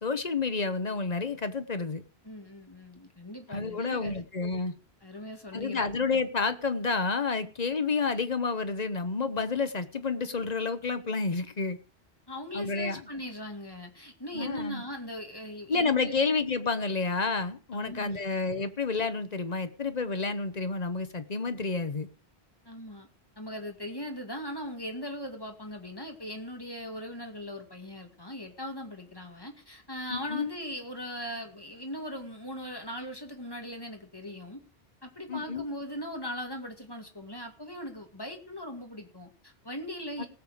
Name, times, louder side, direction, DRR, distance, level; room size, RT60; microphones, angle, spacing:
voice 1, 0.0-2.0 3.5-4.7 5.5-11.8 12.5-13.0 14.3-14.8 15.7-22.1 30.1-30.5 35.3-35.6 40.2-40.3, left 4 dB, 40° left, 1.1 m, -30 dB
voice 2, 2.2-4.2 5.0-5.9 12.3-16.2 17.7-18.2 22.6-23.1 23.4-34.6 35.0-40.3, equal, 20° left, 2.2 m, -39 dB
19.0 x 6.9 x 4.9 m
omnidirectional pair, 1.0 m